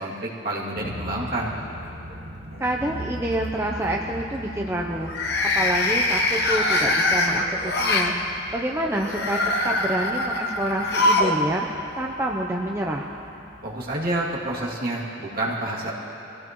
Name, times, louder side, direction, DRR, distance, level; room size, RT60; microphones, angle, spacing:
voice 1, 0.0-1.6 13.6-15.9, right 1 dB, 50° right, -5 dB, 2.5 m, -28 dB
sound 1, 0.8-14.6, equal, 70° right, 1.1 m, -41 dB
sound 2, 1.5-2.1 2.5-2.9 5.0-8.1 8.9-11.4 11.6-11.7 12.9-13.0, left 2 dB, 55° left, 1.3 m, -23 dB
voice 2, 2.6-5.1 5.4-8.1 8.5-9.4 9.6-11.7 12.0-13.1, right 1 dB, 15° right, -1 dB, 0.6 m, -27 dB
23.5 x 16.0 x 3.1 m, 2.8 s
head